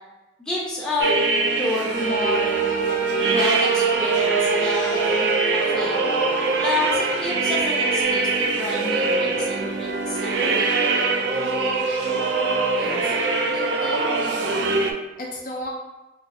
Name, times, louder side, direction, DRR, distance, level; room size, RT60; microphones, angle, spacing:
voice 1, 0.4-1.2 1.6-2.5 3.3-6.0 6.6-10.7, left 2 dB, 5° left, -7 dB, 0.6 m, -29 dB
sound 1, 1.0-14.9, right 3 dB, 75° right, 0.4 m, -23 dB
sound 2, 1.9-8.0, right 7 dB, 45° right, 0.8 m, -27 dB
voice 2, 12.7-13.1 13.4-14.7 15.2-15.7, left 1 dB, 45° left, -2 dB, 0.5 m, -35 dB
3.7 x 2.4 x 2.5 m, 1.0 s
head